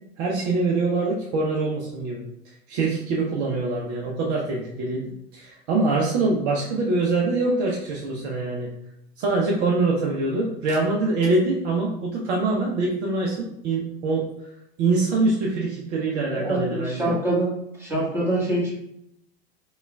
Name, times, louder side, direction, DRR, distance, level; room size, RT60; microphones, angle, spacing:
voice 1, 0.2-2.2 2.7-8.7 9.2-14.3 14.8-17.1, right 3 dB, 45° right, -2 dB, 0.7 m, -24 dB
voice 2, 16.3-17.5 17.8-18.8, right 1 dB, 5° right, -6 dB, 1.3 m, -25 dB
5.0 x 2.3 x 2.3 m, 0.80 s
figure-of-eight pair, 80°, 32 cm